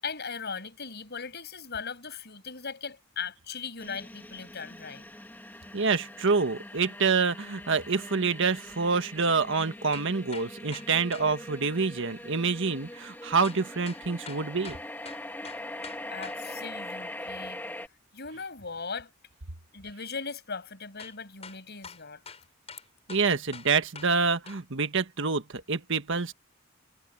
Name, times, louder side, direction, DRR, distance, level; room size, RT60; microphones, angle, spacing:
voice 1, 0.0-5.0 16.1-17.9 18.1-19.1 19.7-22.2, left 5 dB, 55° left, 7.0 m, -38 dB
sound 1, 3.8-17.9, left 1 dB, 10° left, 2.1 m, -42 dB
voice 2, 5.7-14.8 23.1-26.3, right 4 dB, 65° right, 1.4 m, -27 dB
sound 2, 9.6-11.3 13.4-16.4 21.0-21.2 21.4-24.2 24.5-24.6, left 5 dB, 30° left, 8.0 m, -45 dB
head